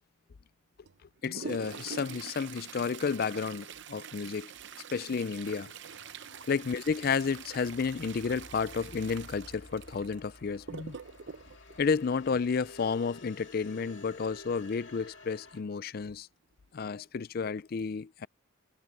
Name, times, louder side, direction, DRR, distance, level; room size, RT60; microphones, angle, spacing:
Toilet flush, 0.8-12.8 14.7-14.8 15.1-15.2 16.0-16.1 16.8-17.0 17.4-17.6, right 7 dB, 60° right, 0.7 m, -46 dB
voice 1, 1.2-4.5 4.9-5.7 6.5-11.0 11.8-16.3 16.7-18.3, left 5 dB, 45° left, 0.4 m, -31 dB
sound 1, 5.2-15.6, left 2 dB, 65° left, 2.2 m, -52 dB
head